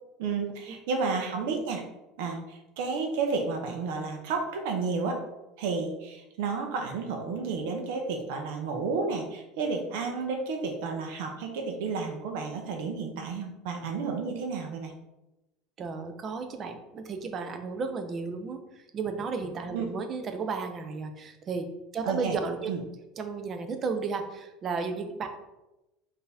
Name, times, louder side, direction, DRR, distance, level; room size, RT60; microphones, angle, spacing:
voice 1, 0.2-1.8 2.2-5.2 5.6-14.9 19.7-19.9 22.0-22.4 22.7-22.8, right 4 dB, 80° right, 3 dB, 0.6 m, -31 dB
voice 2, 15.8-21.6 21.9-22.7 23.2-25.3, right 4 dB, 30° right, 6 dB, 0.5 m, -33 dB
4.3 x 2.7 x 3.4 m, 0.98 s
cardioid pair, 155°, 0 cm